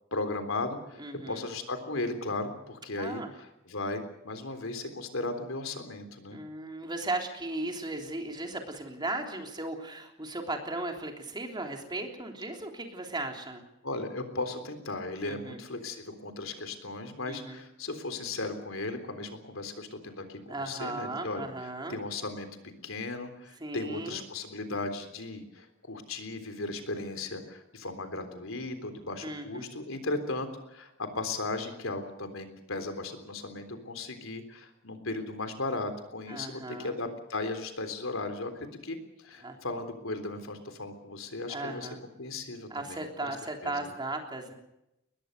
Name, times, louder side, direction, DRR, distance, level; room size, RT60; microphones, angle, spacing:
voice 1, 0.1-1.0 1.3-3.2 3.7-6.4 13.8-21.5 21.9-22.5 22.8-41.9 42.2-43.4 43.6-43.9, left 2 dB, 80° left, 7 dB, 3.6 m, -36 dB
voice 2, 1.0-1.4 3.0-3.3 6.3-13.6 15.2-15.6 17.3-17.6 20.5-22.0 23.6-24.2 29.2-29.7 36.3-37.0 39.4-39.6 41.5-42.0 42.7-44.5, right 2 dB, 20° right, 3 dB, 3.5 m, -36 dB
22.5 x 20.5 x 6.7 m, 0.88 s
head